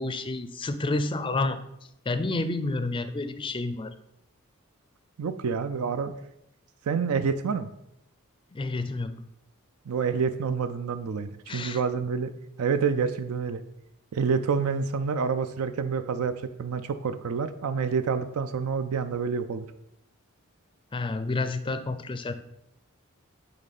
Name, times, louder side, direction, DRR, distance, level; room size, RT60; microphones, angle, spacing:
voice 1, 0.0-1.6 2.1-3.9 8.5-9.2 11.5-11.8 20.9-22.3, left 2 dB, 25° left, 10 dB, 0.4 m, -29 dB
voice 2, 5.2-6.1 6.8-7.7 9.9-12.3 12.6-13.6 14.1-19.6, right 5 dB, 80° right, 10 dB, 0.4 m, -28 dB
8.6 x 3.2 x 4.1 m, 0.81 s
head